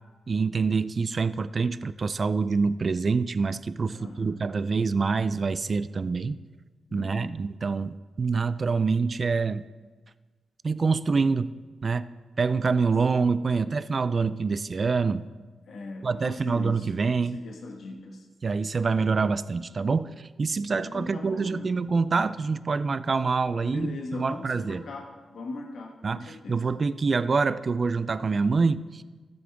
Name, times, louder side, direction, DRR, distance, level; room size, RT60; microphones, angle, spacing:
voice 1, 0.3-6.4 6.9-9.6 10.6-11.5 11.8-12.1 12.4-15.3 16.0-17.4 18.4-24.8 26.0-29.0, right 4 dB, 45° right, 15 dB, 0.4 m, -26 dB
voice 2, 3.9-4.4 6.9-7.4 15.7-16.9 17.2-18.3 20.7-21.8 23.5-26.7, left 2 dB, 70° left, 2 dB, 1.3 m, -39 dB
14.0 x 7.7 x 3.5 m, 1.4 s
cardioid pair, 70°, 0 cm